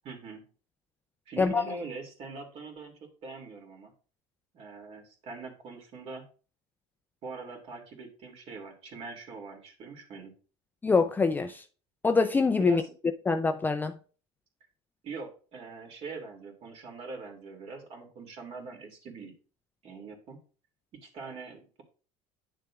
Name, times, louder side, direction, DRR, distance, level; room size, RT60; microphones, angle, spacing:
voice 1, 0.0-0.5 1.3-3.9 4.5-6.3 7.2-10.3 12.6-12.9 15.0-19.3 19.8-20.4 20.9-21.8, right 4 dB, 45° right, 2.4 m, -43 dB
voice 2, 10.8-11.6 12.0-12.8 13.3-14.0, left 4 dB, 15° left, 0.4 m, -24 dB
10.0 x 6.5 x 2.4 m
cardioid pair, 130°, 14 cm